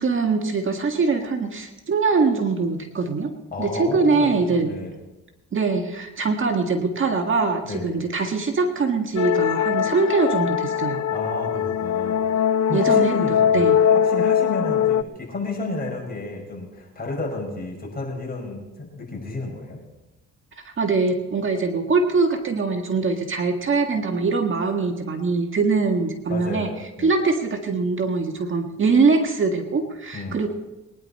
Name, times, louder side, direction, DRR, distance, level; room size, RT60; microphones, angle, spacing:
voice 1, 0.0-3.3 3.6-4.7 5.5-11.0 12.7-13.2 13.5-13.8 20.8-26.7 27.0-30.5, right 4 dB, 40° right, 4 dB, 1.7 m, -22 dB
voice 2, 3.5-4.9 7.6-8.0 11.1-12.4 12.7-19.8 26.3-26.7 27.0-27.1 30.1-30.4, left 2 dB, 30° left, -1 dB, 6.0 m, -32 dB
sound 1, 9.2-15.0, left 8 dB, 65° left, 0.6 m, -21 dB
22.0 x 10.5 x 4.3 m, 1.0 s
cardioid pair, 90°, 30 cm